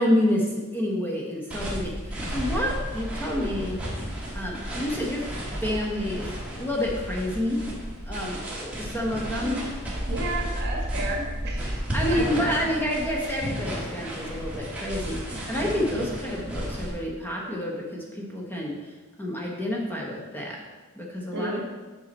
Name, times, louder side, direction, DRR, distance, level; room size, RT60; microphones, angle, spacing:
voice 1, 0.0-5.3 5.6-7.6 8.1-9.6 11.9-20.6 20.9-21.6, left 1 dB, 10° left, -2 dB, 1.0 m, -29 dB
sound 1, 1.5-16.9, equal, 5° right, 1.6 m, -33 dB
voice 2, 10.1-12.6 21.3-21.6, right 2 dB, 55° right, -1 dB, 1.7 m, -33 dB
8.2 x 5.6 x 4.2 m, 1.3 s
head